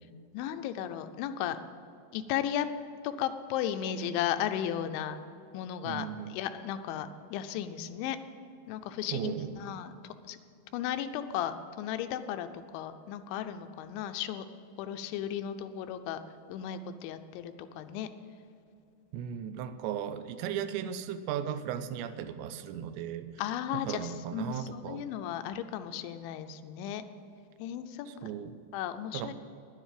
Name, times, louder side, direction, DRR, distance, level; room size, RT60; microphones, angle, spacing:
voice 1, 0.3-1.6 2.1-2.7 3.0-5.2 5.5-8.2 8.7-10.4 10.7-14.5 14.8-16.2 16.5-18.1 23.4-27.0 27.6-28.3 28.7-29.3, left 10 dB, 90° left, 9 dB, 3.0 m, -35 dB
voice 2, 5.8-6.3 9.1-9.7 19.1-23.3 23.9-25.1 28.1-28.6 29.1-29.3, right 9 dB, 80° right, 11 dB, 2.9 m, -36 dB
11.0 x 9.8 x 7.5 m, 2.6 s
omnidirectional pair, 5.3 m